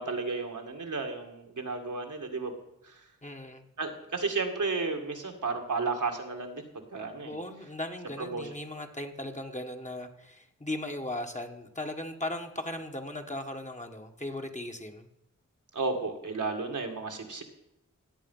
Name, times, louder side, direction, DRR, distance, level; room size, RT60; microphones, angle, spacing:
voice 1, 0.0-2.5 2.9-3.0 3.8-6.6 6.9-7.3 8.2-8.4 15.7-17.4, right 4 dB, 70° right, 3 dB, 2.1 m, -33 dB
voice 2, 3.2-3.7 7.2-15.1, left 1 dB, 20° left, 4 dB, 1.6 m, -37 dB
17.0 x 8.2 x 5.6 m, 0.86 s
cardioid pair, 50°, 32 cm